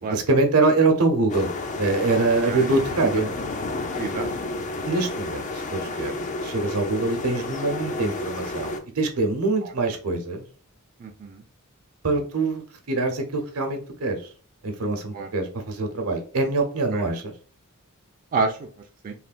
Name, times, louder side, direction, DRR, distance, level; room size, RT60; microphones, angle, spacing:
voice 1, 0.1-1.5 1.8-3.3 4.8-6.1 6.4-10.5 12.0-12.6 12.9-14.2 14.6-17.3, right 3 dB, 75° right, 5 dB, 0.8 m, -24 dB
sound 1, 1.3-8.8, left 2 dB, 35° left, 0.4 m, -31 dB
voice 2, 2.5-2.8 4.0-4.3 7.0-7.1 9.6-9.7 11.0-11.4 15.1-15.3 16.9-17.0 18.3-18.7 19.0-19.1, right 4 dB, 40° right, 2 dB, 0.3 m, -29 dB
3.2 x 2.2 x 2.4 m, 0.42 s
head